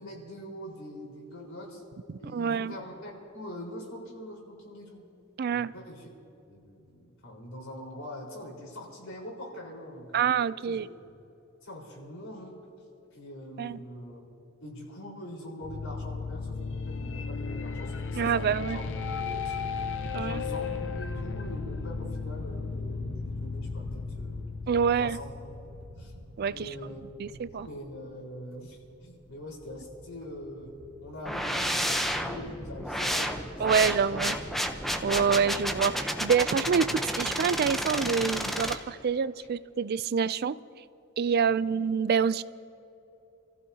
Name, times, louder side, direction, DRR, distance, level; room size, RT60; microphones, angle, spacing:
voice 1, 0.0-1.8 2.2-5.0 5.5-6.1 6.5-10.3 10.6-11.1 11.6-12.6 13.1-14.2 14.6-18.8 19.2-19.6 20.1-24.4 24.9-25.3 25.7-26.1 26.4-30.7 31.0-34.2 41.6-41.7, left 1 dB, 80° left, -2 dB, 4.5 m, -43 dB
voice 2, 2.1-2.8 5.4-5.7 10.1-10.9 13.6-13.8 18.1-18.8 20.1-20.4 24.7-25.2 26.4-26.7 27.2-27.7 33.6-34.4 35.0-40.6 41.2-42.4, right 6 dB, 50° right, 17 dB, 0.4 m, -27 dB
sound 1, 15.6-26.5, left 5 dB, 60° left, 0.7 m, -35 dB
sound 2, 18.7-35.8, right 1 dB, 75° right, 1.4 m, -47 dB
sound 3, 31.3-38.8, equal, ahead, 0.8 m, -31 dB
29.0 x 15.0 x 2.9 m, 2.8 s
head